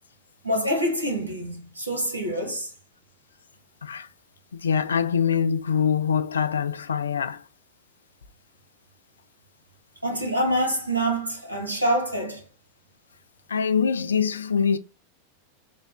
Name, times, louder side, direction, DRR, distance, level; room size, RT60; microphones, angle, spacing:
voice 1, 0.4-2.7 10.0-12.4, right 1 dB, 85° right, 1.1 m, -26 dB
voice 2, 4.6-7.4 13.5-14.8, left 7 dB, 70° left, 0.3 m, -24 dB
3.5 x 2.1 x 4.3 m
figure-of-eight pair, 90°, 0 cm